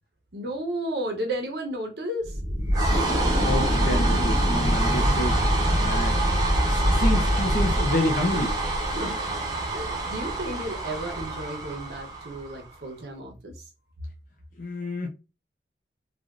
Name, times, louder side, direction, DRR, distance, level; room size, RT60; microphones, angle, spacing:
voice 1, 0.3-2.4 9.0-9.2 9.7-13.7, right 1 dB, 65° right, 0.8 m, -33 dB
sound 1, 2.2-12.7, right 1 dB, 20° right, 0.7 m, -25 dB
sound 2, 2.9-9.0, equal, 70° left, 0.9 m, -33 dB
voice 2, 3.4-5.4 5.8-6.4 6.7-8.6 14.6-15.1, left 1 dB, 50° left, 0.5 m, -28 dB
3.4 x 2.4 x 2.4 m
head